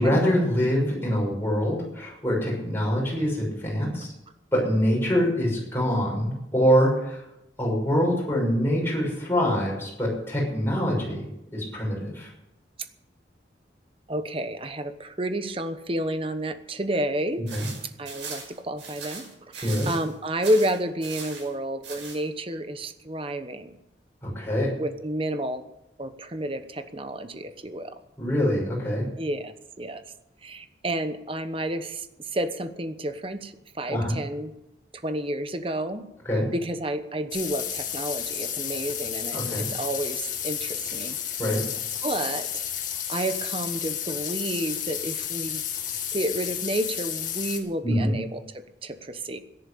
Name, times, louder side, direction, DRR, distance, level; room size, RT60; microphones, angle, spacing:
voice 1, 0.0-4.1 4.5-7.2 7.6-11.3 11.5-12.3 17.5-17.7 19.6-19.9 24.2-24.7 28.2-29.1 33.9-34.2 36.2-36.5 39.3-39.7 41.4-41.6 47.8-48.1, equal, 15° left, -3 dB, 6.2 m, -24 dB
voice 2, 14.1-17.4 18.0-23.8 24.8-25.6 26.0-27.9 29.2-30.0 30.4-32.1 32.3-34.5 35.0-36.0 36.5-41.2 42.0-42.6 43.1-45.6 46.1-49.4, right 1 dB, 30° right, 9 dB, 1.1 m, -30 dB
sound 1, 17.5-20.1 20.4-21.5 21.8-22.2, right 5 dB, 85° right, 5.5 m, -39 dB
sound 2, 37.3-47.6, left 9 dB, 45° left, 1.9 m, -32 dB
13.5 x 11.0 x 8.4 m, 0.88 s
head